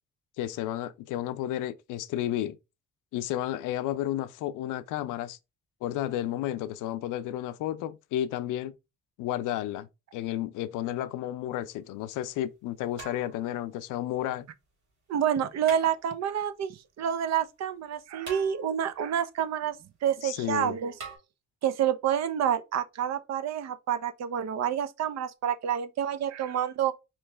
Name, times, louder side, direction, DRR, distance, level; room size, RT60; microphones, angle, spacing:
voice 1, 0.4-2.6 3.1-5.4 5.8-8.7 9.2-14.5 20.2-20.7, left 12 dB, 90° left, 0.5 m, -32 dB
sound 1, 11.6-11.7 13.0-13.7 15.6-16.4 18.2-19.0 21.0-21.2, right 4 dB, 80° right, 2.8 m, -44 dB
voice 2, 15.1-19.8 20.0-20.9 21.6-26.9, right 9 dB, 60° right, 0.6 m, -28 dB
4.4 x 3.0 x 3.2 m
cardioid pair, 90°, 30 cm